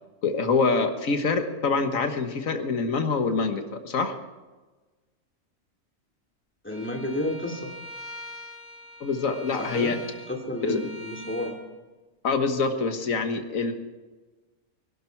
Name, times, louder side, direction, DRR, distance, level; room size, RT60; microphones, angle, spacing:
voice 1, 0.2-4.1 9.0-10.0 10.6-10.8 12.2-13.7, left 4 dB, 80° left, 7 dB, 1.8 m, -25 dB
voice 2, 6.6-7.7 9.6-10.0 10.3-11.5, left 1 dB, 10° left, 0 dB, 2.5 m, -31 dB
Bowed string instrument, 6.7-11.6, left 1 dB, 25° right, 2.4 m, -43 dB
22.5 x 12.0 x 4.6 m, 1.2 s
omnidirectional pair, 1.4 m